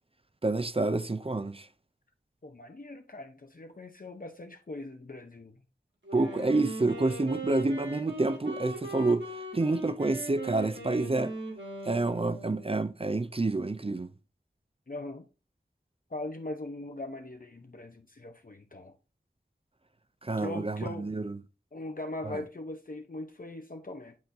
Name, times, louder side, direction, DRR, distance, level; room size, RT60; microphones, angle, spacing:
voice 1, 0.4-1.7 6.1-9.3 9.5-11.3 11.8-14.1 20.2-21.4 22.2-22.4, right 2 dB, 30° right, 0.4 m, -28 dB
voice 2, 2.4-5.6 6.2-6.6 14.9-15.3 16.1-18.9 20.4-21.1 21.7-24.2, left 2 dB, 50° left, 0.7 m, -40 dB
Wind instrument woodwind instrument, 6.0-12.8, right 2 dB, 90° right, 1.9 m, -40 dB
10.5 x 3.8 x 2.7 m
wide cardioid pair, 45°, 19 cm